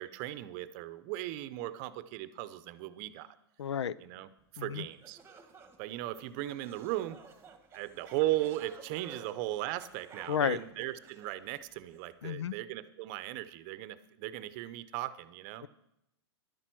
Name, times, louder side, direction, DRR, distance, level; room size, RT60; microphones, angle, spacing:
voice 1, 0.0-3.4 4.0-5.2 5.8-7.2 7.7-15.6, right 15 dB, 45° right, 15 dB, 0.7 m, -37 dB
voice 2, 3.6-4.0 4.6-4.8 10.3-10.6 12.2-12.5 15.6-15.7, left 8 dB, 90° left, 20 dB, 0.5 m, -31 dB
sound 1, 5.0-12.1, right 5 dB, 15° right, 1.3 m, -54 dB
11.0 x 9.9 x 6.2 m, 0.82 s
hypercardioid pair, 125°, 14 cm